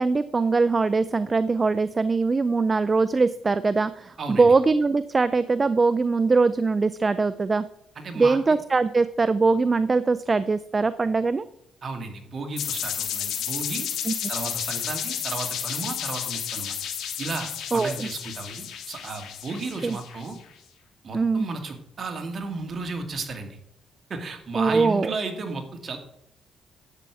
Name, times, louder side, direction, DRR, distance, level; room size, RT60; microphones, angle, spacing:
voice 1, 0.0-7.6 8.1-11.4 14.1-14.2 17.7-18.1 19.8-20.0 21.1-21.5 24.5-25.1, right 4 dB, 30° right, 14 dB, 0.4 m, -22 dB
voice 2, 4.2-4.5 8.0-8.4 11.8-13.9 14.3-16.8 17.2-20.4 21.0-23.6 24.1-26.0, right 3 dB, 45° right, 4 dB, 2.1 m, -33 dB
sound 1, 12.6-20.3, left 9 dB, 80° left, 1.8 m, -32 dB
11.0 x 8.2 x 4.8 m, 0.76 s
cardioid pair, 90°, 0 cm